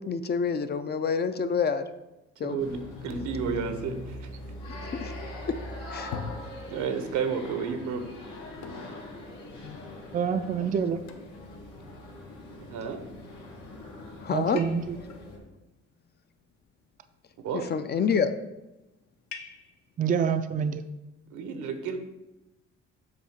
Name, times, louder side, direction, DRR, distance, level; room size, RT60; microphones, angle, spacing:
voice 1, 0.0-1.8 2.4-2.6 4.8-5.1 5.5-5.6 5.9-6.1 9.6-9.8 14.2-14.6 17.7-18.4, left 6 dB, 35° left, 10 dB, 0.4 m, -27 dB
voice 2, 2.4-4.3 6.7-8.1 12.7-13.0 17.4-17.6 21.3-22.0, right 6 dB, 80° right, 7 dB, 0.9 m, -31 dB
sound 1, 2.6-15.4, left 1 dB, 90° left, 1.9 m, -42 dB
sound 2, 6.1-7.1 8.6-9.1 9.7-9.8 10.3-10.4 11.1-11.4 12.5-13.0 13.7-14.0 14.6-15.2 16.4-17.0 17.4-17.9 19.3-19.9, left 5 dB, 70° left, 0.8 m, -44 dB
voice 3, 10.1-11.0 14.3-15.0 20.0-20.8, right 7 dB, 30° right, 10 dB, 0.4 m, -27 dB
7.5 x 2.8 x 5.7 m, 0.98 s
cardioid pair, 100°, 29 cm